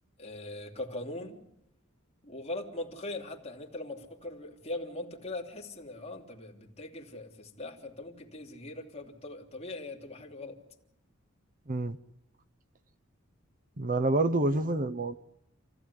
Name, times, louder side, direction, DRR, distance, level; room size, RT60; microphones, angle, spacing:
voice 1, 0.2-1.4 2.2-10.6, left 2 dB, 30° left, 1 dB, 3.3 m, -40 dB
voice 2, 13.8-15.1, right 2 dB, 40° right, 14 dB, 0.9 m, -27 dB
28.5 x 15.5 x 9.9 m, 0.78 s
head